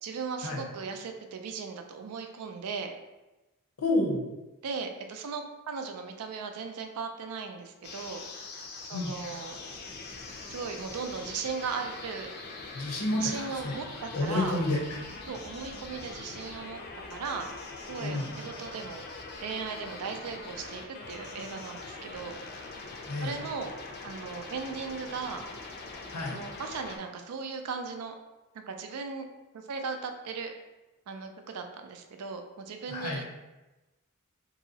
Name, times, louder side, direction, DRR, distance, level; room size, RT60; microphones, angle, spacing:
voice 1, 0.0-2.9 4.6-8.2 8.8-9.6 10.5-12.3 13.2-14.6 15.3-16.8 17.1-17.5 17.9-19.0 19.4-20.8 21.1-22.4 23.2-23.7 24.0-25.5 26.3-28.1 28.5-29.2 29.5-30.5 31.1-33.2, right 5 dB, 85° right, 5 dB, 0.4 m, -37 dB
voice 2, 3.8-4.3 8.9-9.1 12.7-13.7 14.1-15.0 18.0-18.3 23.1-23.3 26.1-26.4 32.9-33.2, left 2 dB, 80° left, 0 dB, 0.7 m, -30 dB
sound 1, 7.8-27.0, left 3 dB, 45° left, 0.4 m, -43 dB
2.9 x 2.7 x 2.7 m, 1.1 s
head